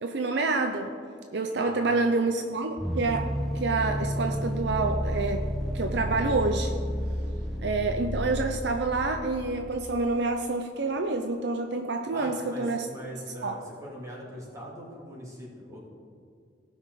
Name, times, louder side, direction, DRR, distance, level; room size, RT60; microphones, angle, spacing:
voice 1, 0.0-0.9 1.3-5.5 5.7-6.7 7.6-12.9 13.4-13.6, right 3 dB, 65° right, 5 dB, 0.6 m, -28 dB
voice 2, 1.5-2.1 7.2-7.8 12.1-15.8, equal, 20° right, -5 dB, 2.9 m, -42 dB
sound 1, 2.8-10.0, equal, ahead, 0.7 m, -31 dB
17.5 x 6.1 x 4.0 m, 2.4 s
head